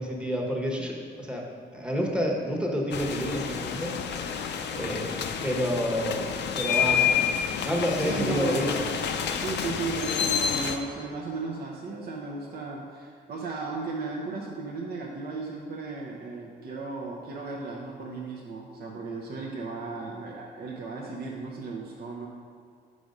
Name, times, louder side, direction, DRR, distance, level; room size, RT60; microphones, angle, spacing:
voice 1, 0.0-1.4 1.7-3.9 4.7-6.3 6.6-7.3 7.6-8.8, equal, 5° right, -1 dB, 1.1 m, -29 dB
sound 1, 2.9-10.8, left 7 dB, 60° left, 0.5 m, -29 dB
voice 2, 4.7-5.1 8.0-8.7 9.4-22.3, right 3 dB, 55° right, -2 dB, 0.7 m, -35 dB
5.1 x 4.8 x 5.2 m, 2.1 s
cardioid pair, 90°, 20 cm